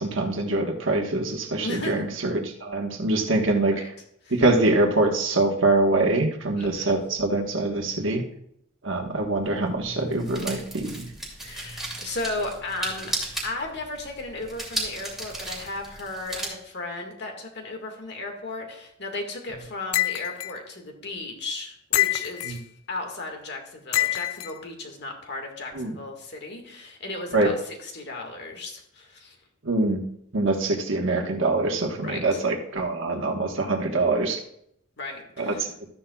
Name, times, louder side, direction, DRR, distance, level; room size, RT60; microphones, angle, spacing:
voice 1, 0.0-3.7 4.3-8.2 8.8-11.1 22.4-22.6 25.7-26.0 27.3-27.5 29.6-30.0 30.3-34.4 35.4-35.7, right 2 dB, 65° right, 2 dB, 1.4 m, -24 dB
voice 2, 1.6-2.1 3.7-3.9 4.2-4.4 6.6-7.0 11.4-13.1 13.4-22.6 22.9-29.4 32.0-32.4 35.0-35.7, left 2 dB, 55° left, 2 dB, 1.9 m, -35 dB
sound 1, 8.9-16.5, right 1 dB, ahead, 2.6 m, -36 dB
sound 2, 19.9-20.5 21.9-22.6 23.9-24.5, left 14 dB, 85° left, 0.3 m, -25 dB
13.0 x 9.9 x 2.4 m, 0.73 s
head